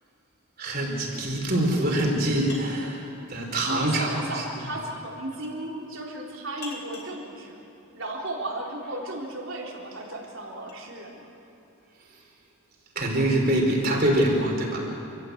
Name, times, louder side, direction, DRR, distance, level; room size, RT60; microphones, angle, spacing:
voice 1, 0.6-4.7 13.0-15.0, right 1 dB, 45° right, 0 dB, 4.2 m, -25 dB
sound 1, 2.4-2.9 5.3-5.7 6.6-7.2 9.5-11.0, left 2 dB, 45° left, 2.7 m, -44 dB
voice 2, 3.4-7.6 7.9-11.3, right 1 dB, 60° right, -2 dB, 4.0 m, -35 dB
27.0 x 15.5 x 8.2 m, 2.8 s
head